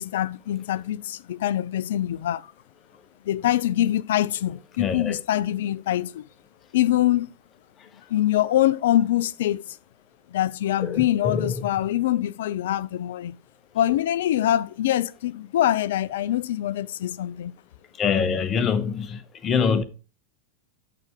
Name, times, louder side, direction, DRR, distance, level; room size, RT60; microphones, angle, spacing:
voice 1, 0.0-2.5 3.3-6.3 6.7-7.3 8.1-9.6 10.3-13.4 13.7-17.5, left 13 dB, 55° left, 0.3 m, -24 dB
voice 2, 4.8-5.2 10.8-11.6 18.0-19.8, left 6 dB, 25° left, 0.8 m, -25 dB
6.7 x 5.7 x 3.5 m
figure-of-eight pair, 90°, 0 cm